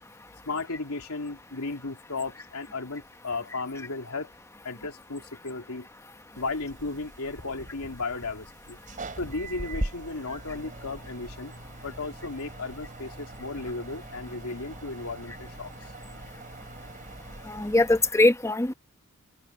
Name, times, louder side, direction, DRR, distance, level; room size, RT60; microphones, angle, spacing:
voice 1, 0.5-4.3 4.6-5.9 6.3-8.8 9.2-11.5 11.8-15.7, left 3 dB, 80° left, 2.8 m, -35 dB
sound 1, 6.3-18.1, right 1 dB, 40° right, 3.2 m, -41 dB
voice 2, 17.5-18.7, left 2 dB, 15° left, 1.0 m, -22 dB
open air
head